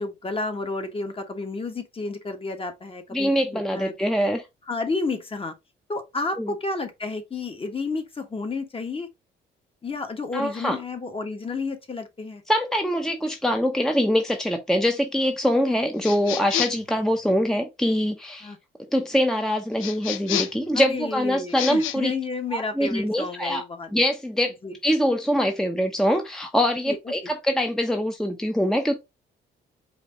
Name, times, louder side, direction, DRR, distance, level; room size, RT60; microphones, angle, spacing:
voice 1, 0.0-3.9 4.7-5.5 5.9-9.1 9.8-12.4 18.4-18.6 20.7-23.9 24.6-24.8 26.9-27.0, left 3 dB, 25° left, 1.2 m, -31 dB
voice 2, 3.1-4.4 6.4-6.5 10.3-10.8 12.5-18.5 18.9-22.1 22.5-23.6 23.9-24.5 24.8-29.0, equal, 5° left, 0.7 m, -23 dB
sound 1, 16.0-16.9 19.8-20.7 21.5-22.0, left 11 dB, 85° left, 0.6 m, -29 dB
4.9 x 2.8 x 3.8 m
cardioid pair, 90°, 20 cm